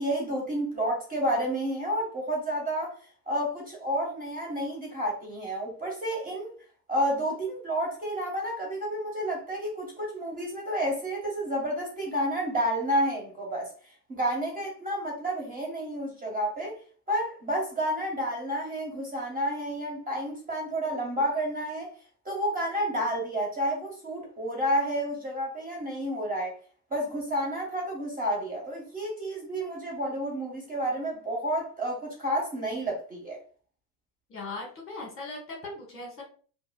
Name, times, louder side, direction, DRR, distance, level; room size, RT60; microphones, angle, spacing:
voice 1, 0.0-3.0 3.3-6.5 6.9-13.7 14.1-16.7 17.1-21.9 22.2-26.5 26.9-33.4, equal, 15° right, -2 dB, 1.4 m, -30 dB
voice 2, 34.3-36.2, left 3 dB, 25° left, -1 dB, 1.4 m, -39 dB
4.6 x 2.3 x 2.3 m, 0.42 s
figure-of-eight pair, 75°, 49 cm